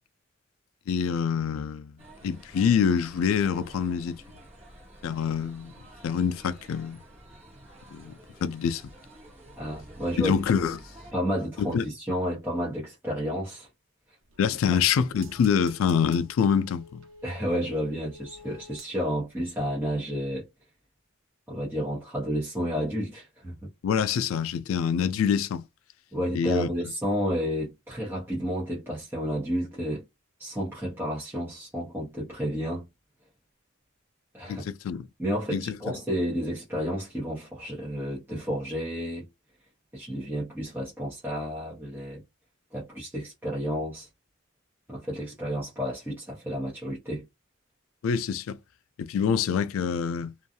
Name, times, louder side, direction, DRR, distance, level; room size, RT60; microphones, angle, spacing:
voice 1, 0.9-1.9 2.2-4.2 5.0-5.7 6.0-7.0 7.9-8.1 8.4-8.8 10.2-10.8 11.6-11.9 14.4-17.0 23.8-25.6 26.3-26.7 34.5-35.1 35.5-35.7 48.0-48.6 49.0-50.3, left 7 dB, 85° left, 0.3 m, -25 dB
sound 1, 2.0-11.1, right 1 dB, 30° right, 1.1 m, -50 dB
voice 2, 9.6-10.3 11.1-13.7 14.7-14.8 17.2-20.5 21.5-23.7 26.1-30.0 30.4-32.8 34.3-34.6 35.2-39.3 39.9-42.2 42.7-44.1 44.9-47.2, equal, 10° right, 0.8 m, -31 dB
sound 2, 14.2-19.4 19.7-19.8, equal, 75° right, 0.7 m, -51 dB
2.5 x 2.2 x 2.7 m
head